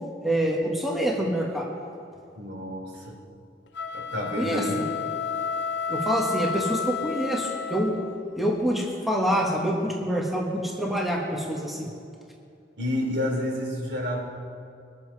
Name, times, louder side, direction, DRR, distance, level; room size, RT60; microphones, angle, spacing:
voice 1, 0.2-1.6 4.4-4.9 5.9-8.0 8.4-11.9, equal, ahead, -3 dB, 1.5 m, -26 dB
voice 2, 2.4-3.2 3.9-4.8 12.8-14.2, left 1 dB, 80° right, -2 dB, 3.4 m, -29 dB
sound 1, 3.7-8.2, left 6 dB, 80° left, 0.6 m, -31 dB
23.0 x 7.6 x 4.7 m, 2.4 s
head